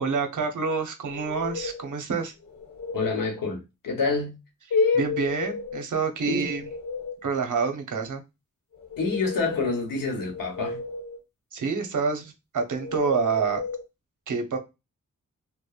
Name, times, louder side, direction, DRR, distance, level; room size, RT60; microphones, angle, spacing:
voice 1, 0.0-2.3 5.0-6.7 7.2-8.2 11.5-13.6 14.3-14.6, right 5 dB, 65° right, 0.7 m, -27 dB
sound 1, 1.1-1.9 2.4-3.3 4.8-5.8 6.2-7.3 8.7-9.8 10.2-11.2 12.8-13.8, left 3 dB, 60° left, 0.9 m, -35 dB
voice 2, 2.9-4.4 4.7-5.1 6.2-6.5 9.0-10.8, left 4 dB, 85° left, 1.0 m, -26 dB
2.9 x 2.1 x 2.3 m
cardioid pair, 60°, 33 cm